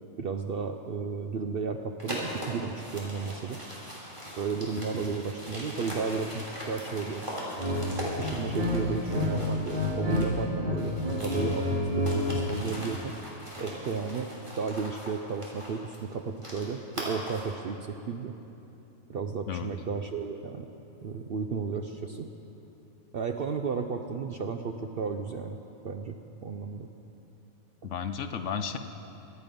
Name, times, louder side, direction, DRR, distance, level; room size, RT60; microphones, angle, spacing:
voice 1, 0.2-3.6 4.4-7.2 8.2-13.1 13.6-14.3 14.6-18.4 19.1-20.7 21.0-22.3 23.1-25.6 25.8-26.2 26.4-26.9, right 5 dB, 60° right, 5 dB, 0.6 m, -33 dB
sound 1, 2.0-10.4 10.7-17.6, equal, 20° right, 3.2 m, -40 dB
sound 2, 7.6-7.8 8.1-9.3 9.6-10.2 10.5-12.4, left 1 dB, 40° right, 3.0 m, -28 dB
voice 2, 27.8-28.8, left 7 dB, 65° left, 9 dB, 0.9 m, -33 dB
24.0 x 9.3 x 5.3 m, 3.0 s
omnidirectional pair, 1.5 m